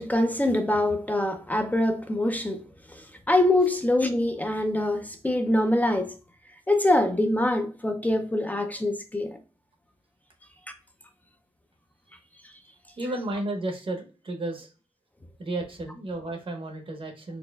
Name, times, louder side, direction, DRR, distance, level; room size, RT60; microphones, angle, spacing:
voice 1, 0.0-2.6 2.9-6.1 6.7-9.4, left 1 dB, 15° left, 0.4 m, -24 dB
voice 2, 13.0-14.7 15.4-17.4, right 2 dB, 50° right, 0.8 m, -33 dB
4.2 x 2.9 x 2.2 m
wide cardioid pair, 90°, 11 cm